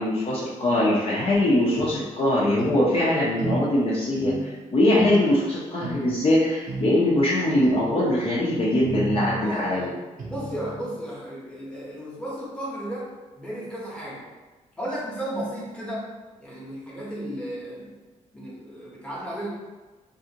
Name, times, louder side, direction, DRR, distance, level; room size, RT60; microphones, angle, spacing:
voice 1, 0.0-9.9, left 1 dB, 45° left, -6 dB, 0.7 m, -22 dB
sound 1, 1.8-2.0 2.6-2.8 3.4-3.6 4.2-4.4 5.0-5.2 5.8-6.0 6.7-6.9 7.6-7.9 8.8-9.4 10.2-10.9, right 3 dB, 75° right, 0.7 m, -32 dB
voice 2, 9.4-14.3 14.8-16.1 16.4-18.0 18.3-19.5, right 1 dB, 10° left, -6 dB, 0.9 m, -34 dB
2.7 x 2.5 x 2.8 m, 1.2 s
cardioid pair, 105°, 13 cm